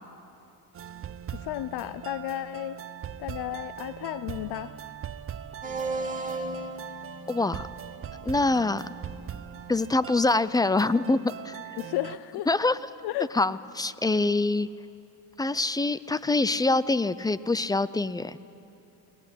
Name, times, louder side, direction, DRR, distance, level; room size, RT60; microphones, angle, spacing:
sound 1, 0.7-12.2, right 9 dB, 35° right, 0.7 m, -41 dB
voice 1, 1.3-2.8 3.2-4.7 11.8-12.5 13.0-13.3, left 14 dB, 80° left, 14 dB, 0.6 m, -33 dB
sound 2, 5.6-11.0, right 2 dB, 20° right, 2.3 m, -38 dB
voice 2, 7.3-7.7 8.2-8.9 9.7-11.6 12.5-12.8 13.3-14.7 15.4-18.4, left 3 dB, 10° left, 17 dB, 0.5 m, -25 dB
22.5 x 18.5 x 9.9 m, 2.9 s
cardioid pair, 100°, 38 cm